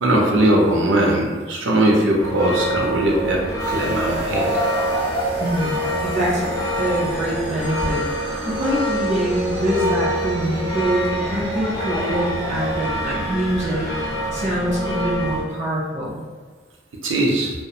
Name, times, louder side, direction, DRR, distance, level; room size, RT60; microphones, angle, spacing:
voice 1, 0.0-4.5 17.0-17.5, right 1 dB, 90° right, -2 dB, 0.5 m, -19 dB
sound 1, 2.2-15.5, equal, 20° left, 0.4 m, -25 dB
gravitational oscillator, 3.6-14.1, right 1 dB, 65° right, 0.8 m, -37 dB
voice 2, 5.4-13.9 14.3-16.2, right 1 dB, 40° right, -5 dB, 0.5 m, -24 dB
2.4 x 2.1 x 2.7 m, 1.4 s
head